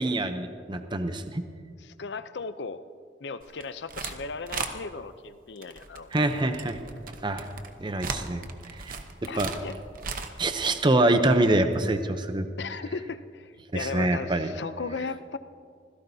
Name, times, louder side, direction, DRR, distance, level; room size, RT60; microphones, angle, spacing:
voice 1, 0.0-1.4 6.1-6.8 7.2-7.5 7.8-8.4 8.8-9.0 9.3-9.5 10.4-12.5 13.7-14.5, right 2 dB, 25° right, 8 dB, 0.6 m, -25 dB
voice 2, 1.8-2.8 3.2-6.1 9.3-9.8 12.6-15.4, left 4 dB, 70° left, 12 dB, 0.6 m, -36 dB
sound 1, 3.4-4.2 4.5-4.7 5.6-10.7, right 4 dB, 50° right, 1.0 m, -37 dB
25.5 x 16.0 x 2.8 m, 2.2 s
head